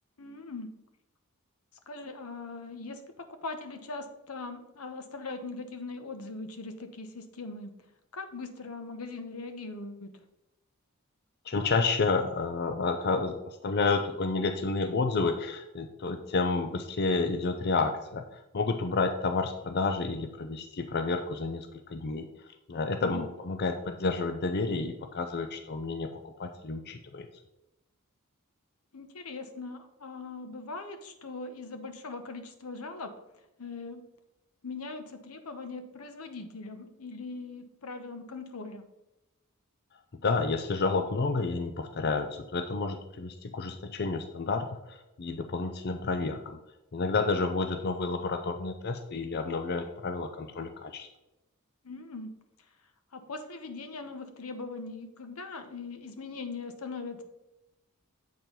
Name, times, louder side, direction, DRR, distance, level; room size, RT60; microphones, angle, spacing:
voice 1, 0.2-0.7 1.9-7.7 8.1-10.1 23.0-23.3 28.9-33.1 33.6-34.0 34.6-38.8 51.8-52.3 53.1-57.2, left 3 dB, 85° left, 8 dB, 1.0 m, -40 dB
voice 2, 11.5-22.3 22.7-27.3 40.2-46.6 46.9-51.1, left 3 dB, 50° left, 7 dB, 0.5 m, -30 dB
7.7 x 4.5 x 5.2 m, 0.96 s
head